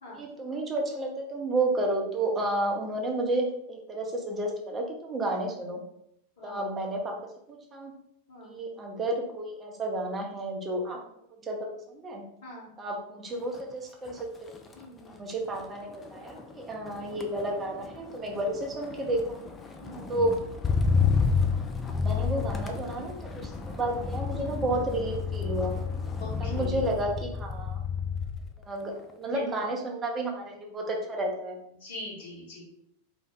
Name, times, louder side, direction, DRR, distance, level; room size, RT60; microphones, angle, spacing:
voice 1, 0.1-5.8 6.4-7.2 7.5-7.9 8.4-11.0 11.4-12.2 12.8-14.5 15.2-19.4 20.1-20.4 21.9-25.8 26.4-27.8 28.6-31.6, right 1 dB, 20° right, 0 dB, 0.6 m, -31 dB
voice 2, 6.4-6.7 8.3-8.5 10.9-11.0 12.4-12.7 14.8-15.4 18.3-18.4 19.8-20.2 26.2-26.8 29.2-29.5 31.8-32.6, left 2 dB, 60° left, -4 dB, 1.2 m, -43 dB
Motor vehicle (road), 13.4-13.7 14.1-28.5 28.9-29.3, left 5 dB, 15° left, 0.3 m, -31 dB
2.6 x 2.1 x 3.4 m, 0.75 s
figure-of-eight pair, 90°, 0 cm